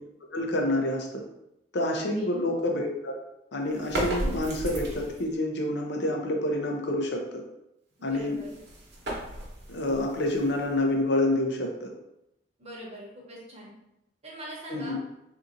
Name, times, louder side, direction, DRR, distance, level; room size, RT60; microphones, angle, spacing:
voice 1, 0.3-1.1 1.7-3.1 3.5-7.4 8.0-8.4 9.7-11.9 14.7-15.0, left 1 dB, 65° left, 2 dB, 0.6 m, -28 dB
voice 2, 2.0-2.3 8.0-8.6 12.6-13.7 14.2-15.0, right 1 dB, 35° right, -3 dB, 0.9 m, -42 dB
sound 1, 3.7-5.3 8.1-11.0, right 1 dB, 65° right, 0.9 m, -35 dB
3.7 x 2.7 x 2.6 m, 0.85 s
head